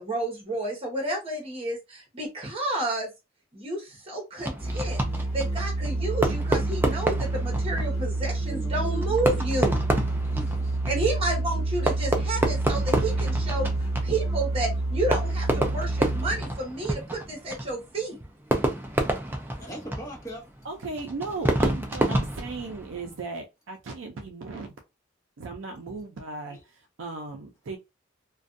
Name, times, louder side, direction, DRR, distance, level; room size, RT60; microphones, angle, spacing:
voice 1, 0.0-3.1 3.5-9.8 10.8-18.2, right 2 dB, 30° right, 1.0 m, -31 dB
Fireworks, 4.4-23.2, right 1 dB, 10° right, 0.4 m, -30 dB
Musical instrument, 4.6-16.6, right 2 dB, 40° left, 1.4 m, -28 dB
voice 2, 8.5-9.2 10.2-10.8 19.6-20.4 26.5-26.6, right 1 dB, 15° left, 1.1 m, -39 dB
voice 3, 20.6-24.8 25.4-27.8, right 3 dB, 70° right, 0.5 m, -36 dB
2.5 x 2.2 x 2.5 m
head